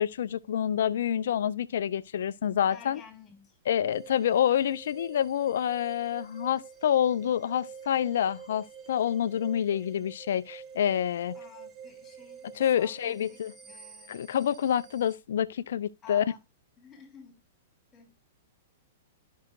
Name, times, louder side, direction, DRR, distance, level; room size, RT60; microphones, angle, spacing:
voice 1, 0.0-3.0 3.7-11.3 12.6-13.5 14.1-16.3, left 9 dB, 60° left, 0.4 m, -27 dB
voice 2, 2.7-3.6 11.3-14.2 16.0-16.4 16.8-17.4 17.9-18.2, left 6 dB, 20° left, 2.8 m, -52 dB
sound 1, 3.9-15.2, right 7 dB, 25° right, 0.8 m, -48 dB
13.0 x 5.6 x 2.5 m
figure-of-eight pair, 105°, 0 cm